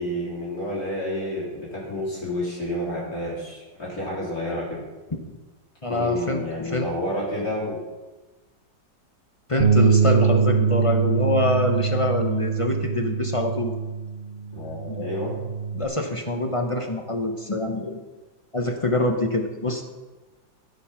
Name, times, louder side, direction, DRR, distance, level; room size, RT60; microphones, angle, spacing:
voice 1, 0.0-4.8 5.9-7.8 14.5-15.4, left 1 dB, 55° left, -6 dB, 4.3 m, -30 dB
voice 2, 5.8-6.9 9.5-13.7 14.9-15.1 15.7-18.0 18.5-19.8, left 1 dB, 30° left, 4 dB, 0.6 m, -25 dB
Bass guitar, 9.6-15.8, right 6 dB, 55° right, 0.6 m, -23 dB
15.0 x 6.4 x 5.8 m, 1.2 s
omnidirectional pair, 1.9 m